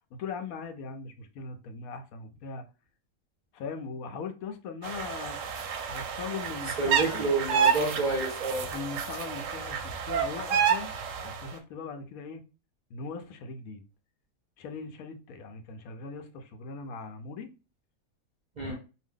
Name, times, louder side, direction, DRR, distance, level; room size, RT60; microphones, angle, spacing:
voice 1, 0.1-2.6 3.5-7.2 7.7-8.1 8.6-10.9 11.2-12.4 12.9-13.8 14.6-17.5 18.6-18.8, left 5 dB, 75° left, 1.0 m, -40 dB
sound 1, 4.8-11.5, right 7 dB, 70° right, 0.9 m, -29 dB
voice 2, 6.8-8.7 18.6-18.8, right 3 dB, 50° right, 0.5 m, -29 dB
2.7 x 2.1 x 3.5 m
omnidirectional pair, 1.5 m